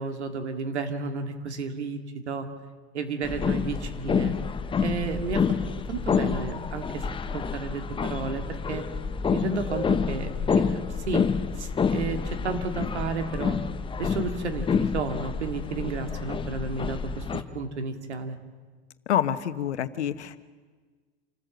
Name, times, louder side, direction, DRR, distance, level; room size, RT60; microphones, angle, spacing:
voice 1, 0.0-2.5 2.9-4.3 4.8-5.4 5.9-7.1 7.3-8.4 8.7-8.8 9.3-10.3 10.6-10.8 11.1-11.3 11.6-13.6 14.0-18.4, right 4 dB, 90° right, 6 dB, 2.3 m, -32 dB
sound 1, 3.2-17.4, left 6 dB, 15° left, 0.9 m, -28 dB
voice 2, 19.1-20.4, left 10 dB, 85° left, 12 dB, 1.2 m, -27 dB
27.5 x 13.5 x 7.9 m, 1.5 s
hypercardioid pair, 110°, 33 cm